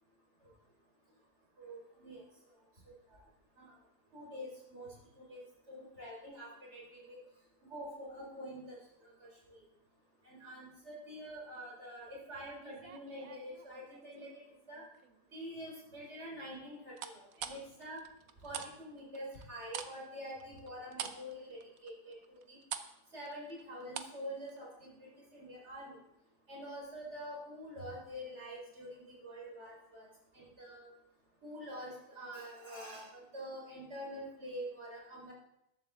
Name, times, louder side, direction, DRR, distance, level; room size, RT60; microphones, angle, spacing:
voice 1, 1.6-2.2 2.9-3.2 3.6-3.7 4.1-7.2 7.7-8.8 9.0-9.6 10.2-14.8 15.3-18.0 18.4-22.6 23.1-26.0 26.5-30.1 30.3-30.9 31.4-35.3, equal, 40° right, -3 dB, 4.5 m, -46 dB
sound 1, 12.6-14.3 14.7-15.2 17.0-18.7 19.0-24.2 24.5-24.6, right 8 dB, 65° right, 1.2 m, -45 dB
14.0 x 11.5 x 3.6 m, 0.82 s
omnidirectional pair, 1.7 m